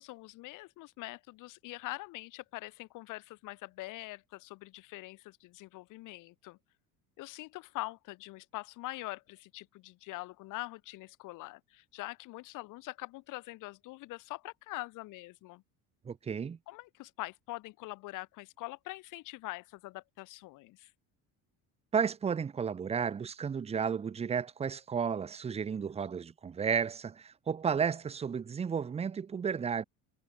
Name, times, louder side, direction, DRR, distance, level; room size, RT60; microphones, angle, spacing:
voice 1, 0.0-6.6 7.2-15.6 16.7-20.9, left 20 dB, 60° left, 1.5 m, -44 dB
voice 2, 16.0-16.6 21.9-29.8, right 6 dB, 20° right, 0.8 m, -33 dB
cardioid pair, 160°, 34 cm